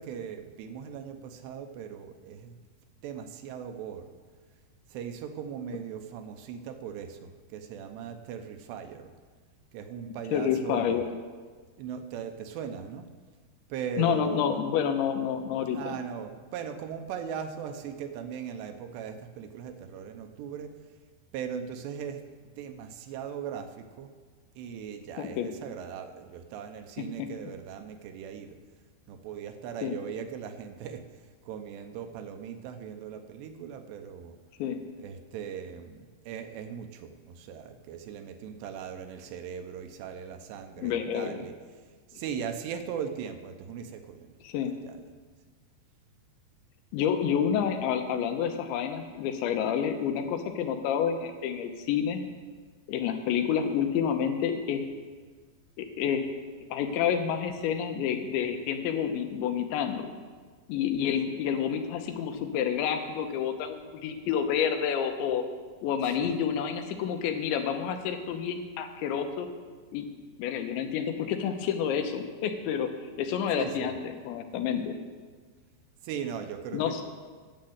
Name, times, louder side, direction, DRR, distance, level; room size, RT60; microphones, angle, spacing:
voice 1, 0.0-2.6 3.0-4.1 4.9-9.1 9.7-11.0 11.8-13.1 13.7-14.6 15.7-20.8 21.3-22.3 22.6-24.1 24.6-28.6 29.1-31.1 31.5-34.4 35.0-41.6 42.1-45.1 66.0-66.3 73.5-73.9 76.0-77.0, right 8 dB, 80° right, 7 dB, 2.8 m, -39 dB
voice 2, 10.3-11.1 14.0-16.0 25.2-25.5 27.2-27.3 29.8-30.0 34.6-34.8 40.8-41.4 44.4-44.8 46.9-52.2 52.9-54.9 55.8-56.3 56.7-60.1 60.7-65.4 65.8-69.5 69.9-70.1 70.4-72.9 73.2-74.9 76.7-77.0, left 8 dB, 85° left, 6 dB, 3.3 m, -29 dB
10.5 x 8.7 x 7.8 m, 1.5 s
omnidirectional pair, 5.1 m